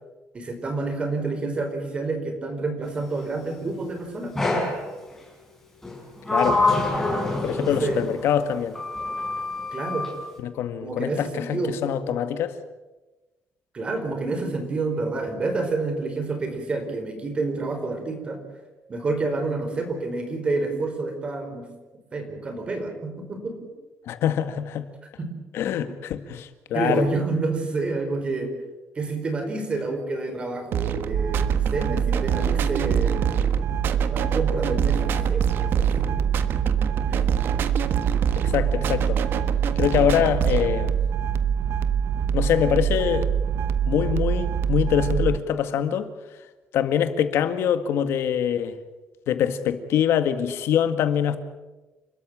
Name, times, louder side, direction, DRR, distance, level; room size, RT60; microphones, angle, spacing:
voice 1, 0.3-4.7 7.6-8.0 9.7-10.1 10.8-11.8 13.7-18.4 18.9-21.7 22.1-23.7 25.2-25.3 26.7-28.5 28.9-33.3 34.1-36.2 37.1-37.3, right 3 dB, 25° right, 4.7 m, -29 dB
Sliding door, 4.4-4.8 5.8-8.3 8.8-10.2, left 2 dB, 10° left, 6.2 m, -25 dB
voice 2, 6.3-6.6 7.4-8.8 10.4-12.6 24.1-24.9 25.5-27.0 38.4-39.2 39.8-41.0 42.3-43.3 43.9-46.1 46.7-48.7 49.3-51.4, left 9 dB, 80° left, 1.9 m, -24 dB
sound 1, 30.7-40.7, right 9 dB, 60° right, 1.4 m, -28 dB
sound 2, 31.1-45.4, right 7 dB, 75° right, 1.0 m, -24 dB
30.0 x 13.5 x 9.0 m
cardioid pair, 180°, 4 cm